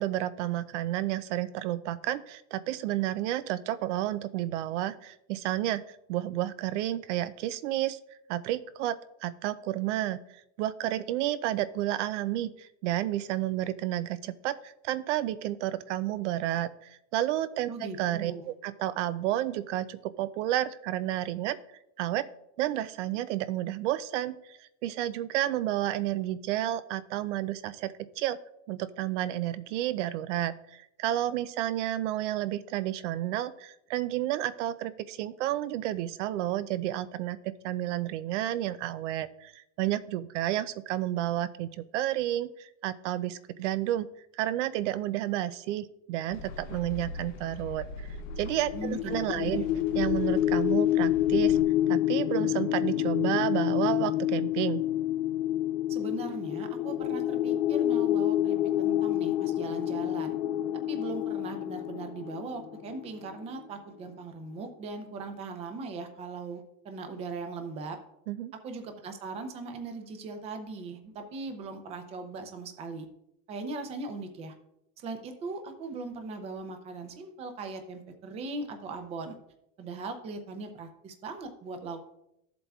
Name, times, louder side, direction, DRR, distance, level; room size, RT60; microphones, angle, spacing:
voice 1, 0.0-8.0 8.3-21.6 22.0-22.3 22.6-28.4 28.7-44.1 44.3-48.1 48.4-49.6 49.9-51.6 51.9-54.8 68.3-68.5, right 13 dB, 70° right, 14 dB, 0.5 m, -31 dB
voice 2, 17.7-18.4 48.7-49.7 55.9-60.4 60.9-68.0 68.6-73.1 73.5-74.5 75.0-79.4 79.8-82.0, right 3 dB, 15° right, 7 dB, 0.5 m, -39 dB
sound 1, 46.3-51.6, left 3 dB, 75° left, 0.9 m, -41 dB
sound 2, 48.3-63.3, left 12 dB, 40° left, 0.5 m, -28 dB
13.5 x 7.7 x 2.3 m, 0.80 s
supercardioid pair, 180°, 37 cm